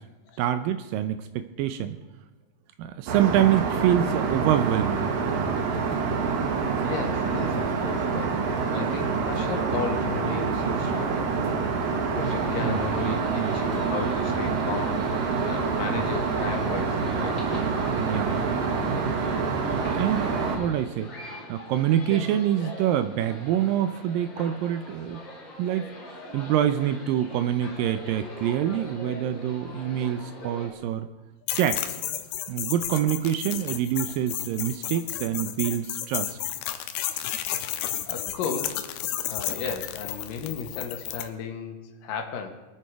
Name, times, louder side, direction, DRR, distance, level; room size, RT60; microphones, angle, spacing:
voice 1, 0.4-2.0 2.8-5.6 12.6-13.6 17.9-18.5 19.9-21.1 21.5-25.2 25.6-25.9 26.3-31.1 31.5-32.0 32.5-36.4, right 11 dB, 80° right, 10 dB, 2.0 m, -26 dB
Aircraft, 3.1-20.6, right 5 dB, 65° right, 2.9 m, -26 dB
voice 2, 6.8-11.4 12.1-15.2 15.4-17.4 24.4-24.5 37.0-37.2 38.1-38.8 39.2-42.5, left 6 dB, 65° left, 4 dB, 2.9 m, -35 dB
sound 1, 12.2-30.7, left 1 dB, 35° left, 2.6 m, -42 dB
sound 2, 31.5-41.3, left 12 dB, 90° left, 2.7 m, -32 dB
23.5 x 8.7 x 4.7 m, 1.1 s
omnidirectional pair, 4.6 m